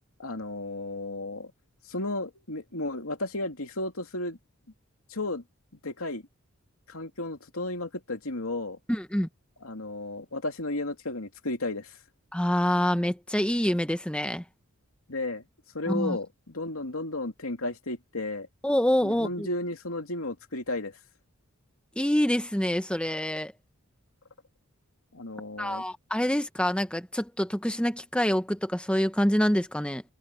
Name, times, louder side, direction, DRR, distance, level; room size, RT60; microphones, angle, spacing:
voice 1, 0.2-1.5 1.9-4.4 5.1-5.4 5.8-6.2 6.9-8.8 9.6-12.0 15.1-15.4 15.7-18.5 19.0-21.0 25.1-25.8, left 2 dB, 80° left, 2.9 m, -33 dB
voice 2, 8.9-9.3 12.3-14.4 15.9-16.2 18.6-19.5 22.0-23.5 25.6-30.0, equal, 5° left, 0.9 m, -26 dB
head